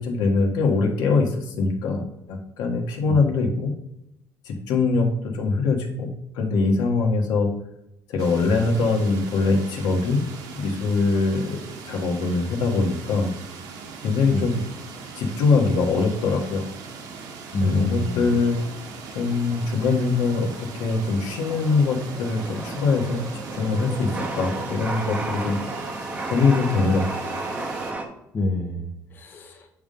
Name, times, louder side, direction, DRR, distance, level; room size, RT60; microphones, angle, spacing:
voice 1, 0.0-3.7 4.4-7.5 8.1-10.2 10.6-11.6 11.8-13.3 14.0-14.6 15.2-16.6 17.6-18.6 19.1-23.3 23.5-25.6 26.3-27.1, left 4 dB, 85° left, 2 dB, 1.5 m, -22 dB
sound 1, 8.2-27.9, right 5 dB, 85° right, 1.3 m, -40 dB
Chatter / Subway metro underground, 13.8-28.0, right 2 dB, 20° right, 0.9 m, -35 dB
voice 2, 17.5-18.3 28.3-29.7, left 2 dB, 30° left, 3 dB, 1.0 m, -27 dB
7.9 x 3.6 x 5.3 m, 0.83 s
cardioid pair, 160°, 7 cm